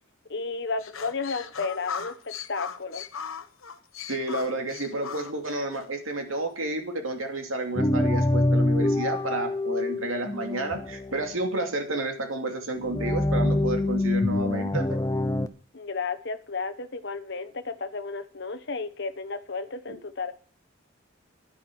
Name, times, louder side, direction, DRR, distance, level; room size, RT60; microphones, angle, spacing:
voice 1, 0.3-3.0 15.7-20.3, left 4 dB, 55° left, 1.1 m, -33 dB
sound 1, 0.8-5.9, left 7 dB, 85° left, 1.1 m, -38 dB
voice 2, 4.1-15.0 19.9-20.0, right 2 dB, 85° right, 2.6 m, -31 dB
sound 2, 7.8-11.3 12.8-15.5, left 1 dB, 15° left, 0.7 m, -25 dB
10.5 x 9.9 x 6.3 m
head